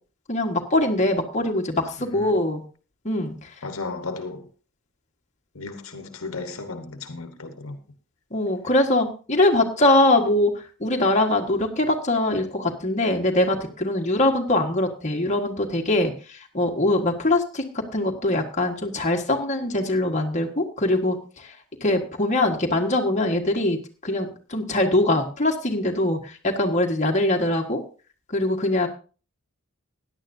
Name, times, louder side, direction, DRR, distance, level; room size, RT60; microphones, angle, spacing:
voice 1, 0.3-2.6 3.0-3.3 8.3-10.5 10.8-17.6 17.9-21.2 21.8-23.8 24.0-27.8 28.3-28.9, left 1 dB, 35° left, 1.6 m, -22 dB
voice 2, 2.0-2.4 3.6-4.5 5.5-7.8, left 3 dB, 75° left, 1.3 m, -35 dB
16.5 x 10.5 x 2.7 m
head